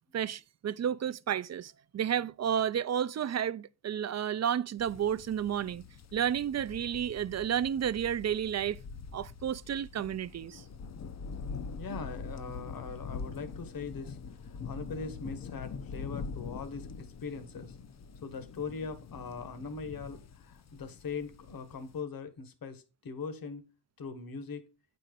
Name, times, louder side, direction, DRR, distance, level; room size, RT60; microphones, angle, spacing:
voice 1, 0.1-5.8 6.1-8.8 9.1-10.6, right 9 dB, 40° right, 0.5 m, -31 dB
sound 1, 4.8-22.0, left 5 dB, 40° left, 0.6 m, -44 dB
voice 2, 11.8-17.8 18.2-23.6 24.0-24.6, left 4 dB, 55° left, 1.3 m, -41 dB
9.3 x 4.4 x 5.1 m
wide cardioid pair, 125°, 41 cm